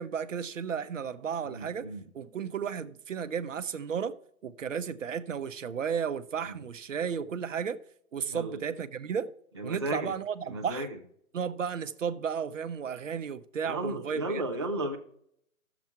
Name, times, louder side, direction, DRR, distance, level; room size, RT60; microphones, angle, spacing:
voice 1, 0.0-4.2 4.4-7.8 8.1-9.3 9.6-10.9 11.3-14.4, right 7 dB, 60° right, 0.9 m, -33 dB
voice 2, 1.4-2.0 8.3-8.6 9.5-10.1 10.4-11.0 13.6-15.0, right 1 dB, 20° right, 0.5 m, -34 dB
13.0 x 7.1 x 4.5 m
hypercardioid pair, 160°, 42 cm